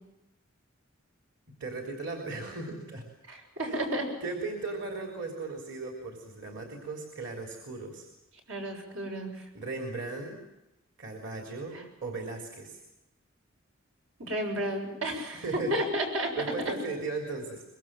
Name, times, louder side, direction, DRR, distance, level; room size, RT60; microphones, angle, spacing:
voice 1, 1.6-3.0 3.6-3.8 4.2-8.1 9.5-10.4 11.0-12.8 15.3-15.8 16.4-17.6, right 3 dB, 60° right, 2 dB, 3.5 m, -37 dB
voice 2, 3.3-4.1 8.5-9.5 11.7-11.8 14.2-16.4, right 1 dB, 85° right, 2 dB, 7.0 m, -32 dB
24.0 x 22.5 x 7.6 m, 0.92 s
head